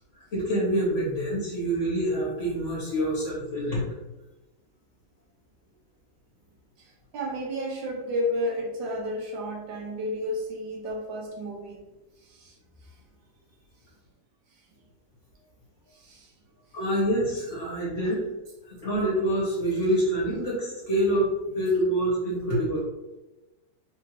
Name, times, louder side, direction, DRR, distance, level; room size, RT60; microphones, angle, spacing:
voice 1, 0.2-3.8 16.7-18.2 18.6-22.8, right 1 dB, 45° left, -6 dB, 1.2 m, -26 dB
voice 2, 7.1-11.8 12.4-12.5 16.0-16.3 18.0-18.1, left 1 dB, 70° right, 0 dB, 1.3 m, -31 dB
3.8 x 2.7 x 3.0 m, 1.1 s
omnidirectional pair, 2.2 m